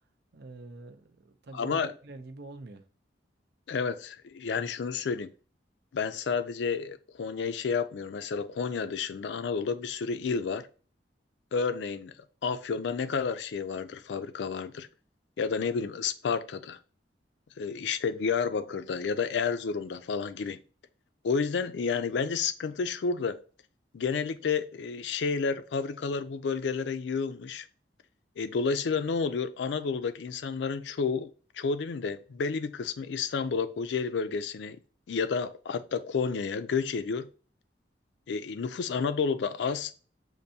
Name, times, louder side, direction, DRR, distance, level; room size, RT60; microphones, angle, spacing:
voice 1, 0.3-2.9, right 2 dB, 65° right, 0.6 m, -46 dB
voice 2, 1.5-1.9 3.7-5.3 5.9-10.7 11.5-12.1 12.4-14.9 15.4-16.8 17.6-20.6 21.2-23.4 23.9-27.7 28.4-31.3 31.5-34.8 35.1-37.3 38.3-39.9, left 5 dB, 70° left, 0.4 m, -30 dB
6.5 x 2.6 x 2.7 m
head